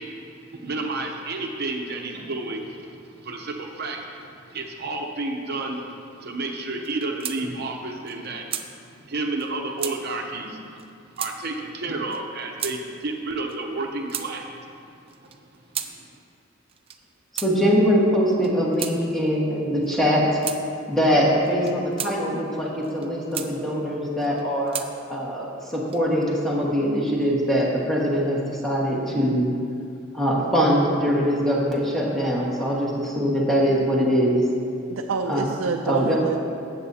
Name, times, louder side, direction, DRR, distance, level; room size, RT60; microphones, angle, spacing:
voice 1, 0.0-5.8 6.2-14.6 15.2-15.3 15.9-16.1, right 2 dB, 50° right, 2 dB, 0.8 m, -31 dB
sound 1, 6.8-7.4 7.7-7.8 8.1-8.7 9.4-9.5 9.8-10.0 10.8-10.9 11.2-11.4 12.1-12.2 12.6-12.8 13.5-14.3 15.1-15.9 16.7-17.0 17.4-17.5 18.3-19.0 19.8-20.0 20.4-20.6 21.5-22.1 22.8-23.5 24.2-24.9 25.7-26.2, right 9 dB, 25° right, 0.5 m, -33 dB
voice 2, 17.3-20.4 20.9-29.5 30.1-34.4 35.3-35.5 35.9-36.2, equal, ahead, -6 dB, 1.6 m, -22 dB
voice 3, 34.9-36.4, right 5 dB, 80° right, 3 dB, 0.4 m, -27 dB
14.0 x 8.2 x 2.8 m, 2.4 s
head